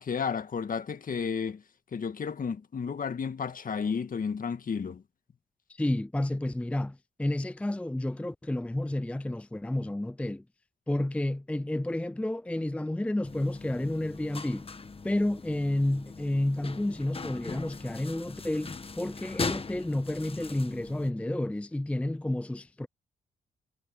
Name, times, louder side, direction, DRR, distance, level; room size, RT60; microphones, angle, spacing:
voice 1, 0.0-1.6 1.9-5.0, left 6 dB, 50° left, 1.9 m, -32 dB
voice 2, 5.7-10.4 10.9-14.7 15.0-22.9, left 1 dB, 5° left, 0.5 m, -30 dB
sound 1, 13.2-21.1, left 4 dB, 30° left, 1.5 m, -39 dB
cardioid pair, 65°, 18 cm